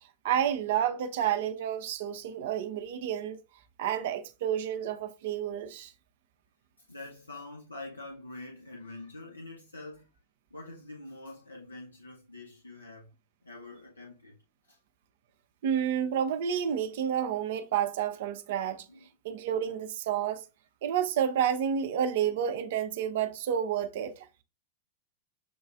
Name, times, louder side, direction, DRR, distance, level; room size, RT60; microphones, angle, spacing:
voice 1, 0.2-3.4 3.8-5.9 15.6-18.9 19.2-20.4 20.8-24.3, right 9 dB, 55° right, 0.4 m, -30 dB
voice 2, 6.9-10.1 10.5-13.1 13.4-14.3 14.7-14.8 18.9-19.1, left 2 dB, 80° left, 0.7 m, -45 dB
6.8 x 2.3 x 2.3 m
figure-of-eight pair, 90°, 0 cm